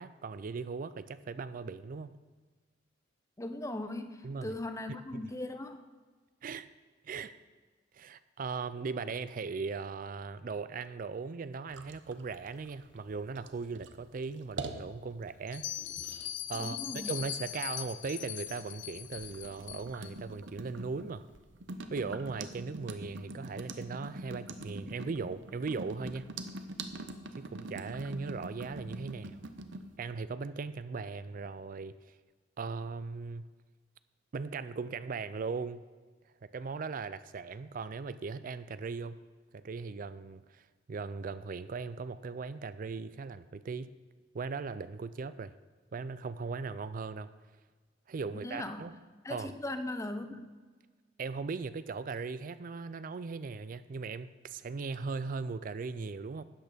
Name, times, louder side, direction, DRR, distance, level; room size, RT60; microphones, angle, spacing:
voice 1, 0.0-2.1 4.2-4.5 5.1-5.3 6.4-6.7 7.0-7.3 7.9-15.7 16.5-21.2 21.9-26.3 27.4-29.4 30.0-32.0 32.6-33.5 34.3-35.8 36.4-39.2 39.5-43.9 44.3-45.5 45.9-47.3 48.1-48.9 49.3-49.5 51.2-56.4, right 4 dB, 45° right, 14 dB, 0.4 m, -38 dB
voice 2, 3.4-5.8 16.5-17.1 48.4-48.9 49.2-50.5, left 1 dB, 15° left, 8 dB, 0.8 m, -39 dB
sound 1, 11.7-29.9, right 2 dB, 75° right, 0.9 m, -44 dB
Bell, 15.5-20.1, left 12 dB, 75° left, 0.6 m, -40 dB
12.5 x 8.9 x 5.1 m, 1.4 s
head